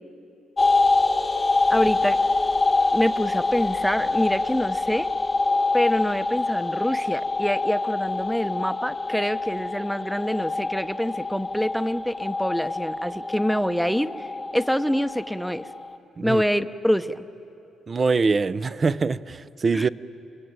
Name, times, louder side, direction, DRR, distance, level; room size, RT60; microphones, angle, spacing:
sound 1, 0.6-15.9, left 3 dB, 25° left, 1.0 m, -25 dB
voice 1, 1.7-2.2 2.9-5.1 5.7-14.3 14.5-15.7 16.2-17.3 19.7-19.9, equal, ahead, 0.8 m, -25 dB
voice 2, 17.9-19.9, right 4 dB, 35° right, 0.6 m, -23 dB
30.0 x 20.5 x 9.0 m
cardioid pair, 90°, 0 cm